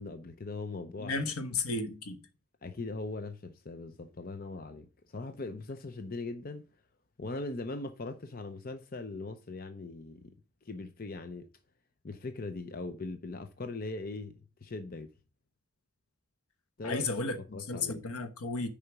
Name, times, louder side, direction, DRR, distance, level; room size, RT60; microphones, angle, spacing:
voice 1, 0.0-1.2 2.6-6.7 7.2-10.4 10.6-11.5 12.0-15.1 16.8-17.1 17.4-18.0, left 3 dB, 40° left, 0.6 m, -40 dB
voice 2, 1.0-2.2 16.8-17.4 17.7-18.7, left 3 dB, 80° left, 1.1 m, -33 dB
6.5 x 5.0 x 6.0 m
head